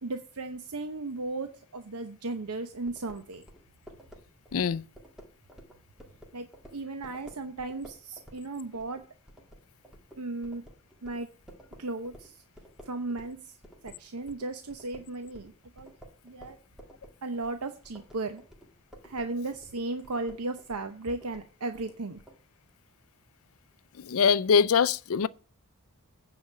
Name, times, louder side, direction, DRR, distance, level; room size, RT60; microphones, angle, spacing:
voice 1, 0.0-3.4 6.3-9.0 10.2-10.6 11.0-11.3 11.8-12.4 12.8-13.6 13.8-15.9 16.2-16.6 17.2-18.4 19.0-22.2, right 2 dB, 90° right, 0.9 m, -36 dB
sound 1, 2.9-13.4 13.6-22.4, equal, 5° right, 1.9 m, -52 dB
voice 2, 4.5-4.9 24.0-25.3, left 6 dB, 70° left, 0.4 m, -23 dB
9.4 x 4.9 x 6.7 m
head